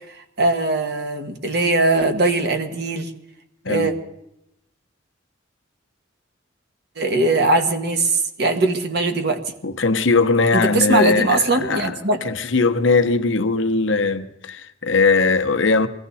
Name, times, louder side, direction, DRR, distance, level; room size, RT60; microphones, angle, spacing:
voice 1, 0.1-3.1 3.7-3.9 7.0-9.4 10.5-12.2, right 2 dB, 55° right, 1.5 m, -20 dB
voice 2, 9.6-12.0 12.2-15.9, left 4 dB, 70° left, 1.0 m, -19 dB
21.5 x 15.5 x 4.2 m
head